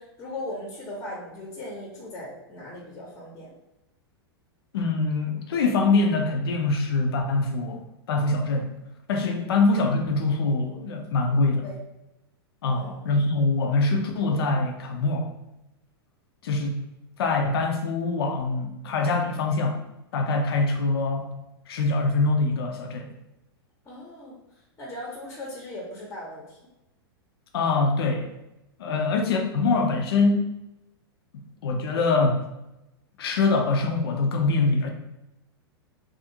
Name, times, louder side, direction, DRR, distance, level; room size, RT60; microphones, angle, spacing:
voice 1, 0.0-3.5 9.3-9.4 11.4-11.7 12.6-13.0 23.8-24.4 24.8-26.6 28.9-29.1, left 1 dB, 20° left, -3 dB, 0.7 m, -38 dB
voice 2, 4.7-7.8 8.1-8.7 9.1-11.6 12.6-15.3 16.4-16.8 17.2-19.8 20.1-21.4 21.7-23.1 27.5-28.3 28.8-30.4 31.6-32.4 33.2-34.9, left 3 dB, 70° left, 3 dB, 0.5 m, -24 dB
2.4 x 2.4 x 2.7 m, 0.93 s
hypercardioid pair, 105°, 13 cm